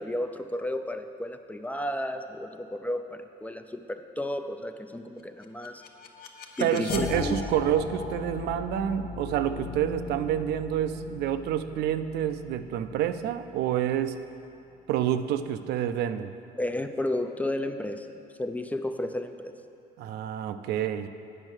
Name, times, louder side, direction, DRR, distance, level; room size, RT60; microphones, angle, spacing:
voice 1, 0.0-5.8 6.6-7.4 16.6-19.6, left 1 dB, 10° left, 8 dB, 0.4 m, -32 dB
sound 1, 5.4-14.4, left 5 dB, 60° left, 0.8 m, -39 dB
voice 2, 6.6-14.2 14.9-16.3 20.0-21.1, right 10 dB, 75° right, 10 dB, 0.4 m, -28 dB
8.9 x 5.4 x 6.3 m, 2.7 s
cardioid pair, 110°, 17 cm